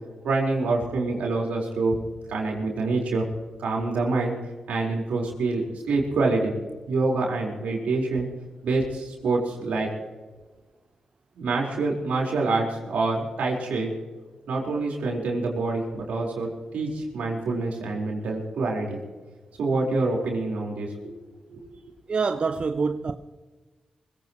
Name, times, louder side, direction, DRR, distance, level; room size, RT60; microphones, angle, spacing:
voice 1, 0.2-1.9 2.3-3.3 3.6-4.3 4.7-6.5 6.9-8.3 8.6-9.9 11.3-13.9 14.5-19.0 19.6-20.9 21.5-21.6, right 3 dB, 85° right, 4.4 m, -26 dB
voice 2, 22.1-23.1, right 4 dB, 50° right, 0.7 m, -25 dB
22.5 x 16.5 x 3.1 m
cardioid pair, 55°, 2 cm